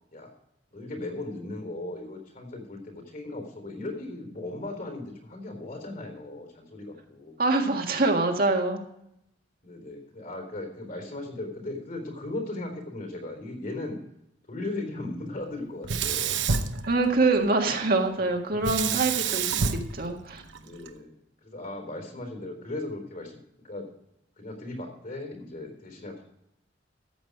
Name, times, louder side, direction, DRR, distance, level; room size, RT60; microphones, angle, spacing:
voice 1, 0.7-7.4 9.6-14.0 14.5-16.5 20.6-23.4 23.6-23.9 24.4-26.2, left 2 dB, 45° left, 4 dB, 4.0 m, -37 dB
voice 2, 7.4-8.8 16.9-20.4, right 3 dB, 50° right, 3 dB, 1.7 m, -25 dB
Sink (filling or washing), 15.8-17.5 18.6-20.9, right 6 dB, 70° right, 0.9 m, -28 dB
14.0 x 8.2 x 4.8 m, 0.79 s
head